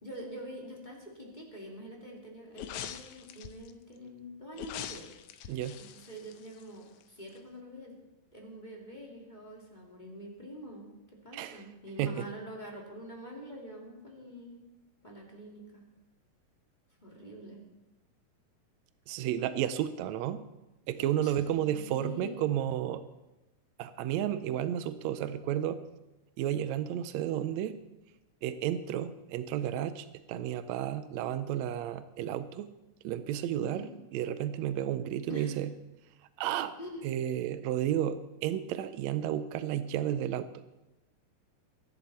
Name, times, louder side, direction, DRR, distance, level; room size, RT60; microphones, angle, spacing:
voice 1, 0.0-5.6 5.9-7.9 8.3-10.9 11.2-14.6 15.0-15.8 17.0-17.6 21.2-22.3 33.7-33.9 35.3-35.5 36.8-37.2, equal, 15° left, -2 dB, 2.6 m, -45 dB
sound 1, 2.5-3.7 4.5-7.0 7.3-7.4, left 10 dB, 75° left, 1.9 m, -43 dB
voice 2, 5.5-5.8 11.3-11.7 12.0-12.3 19.1-20.4 20.9-23.0 23.8-25.8 26.4-27.8 28.4-32.7 33.0-33.9 34.1-35.7 36.4-36.7 37.0-40.5, right 11 dB, 80° right, 12 dB, 1.6 m, -32 dB
23.5 x 11.0 x 4.3 m, 0.99 s
omnidirectional pair, 3.9 m